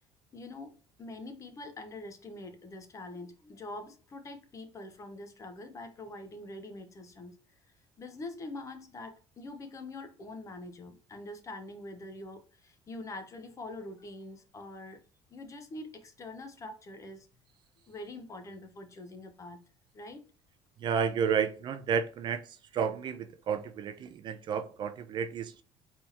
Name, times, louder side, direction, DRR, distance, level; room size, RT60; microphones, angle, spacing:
voice 1, 0.3-7.4 8.0-15.0 15.3-17.3 17.9-19.6 19.9-20.3, left 2 dB, 30° left, 1.0 m, -44 dB
voice 2, 20.8-22.4 22.7-25.6, right 7 dB, 45° right, 0.5 m, -31 dB
4.3 x 3.6 x 2.8 m
cardioid pair, 120°, 11 cm